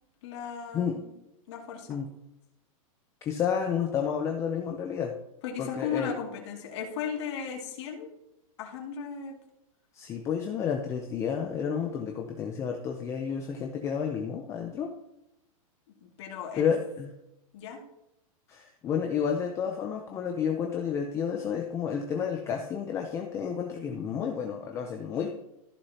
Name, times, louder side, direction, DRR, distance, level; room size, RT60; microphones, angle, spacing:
voice 1, 0.2-1.1 1.5-2.0 5.4-8.1 8.6-9.3 16.0-16.7 17.5-17.8, left 7 dB, 50° left, 0 dB, 2.4 m, -36 dB
voice 2, 3.2-5.1 5.6-6.1 9.9-14.9 16.6-17.1 18.5-25.3, left 7 dB, 15° left, 3 dB, 0.6 m, -30 dB
14.5 x 6.5 x 2.9 m, 0.86 s
supercardioid pair, 165°, 18 cm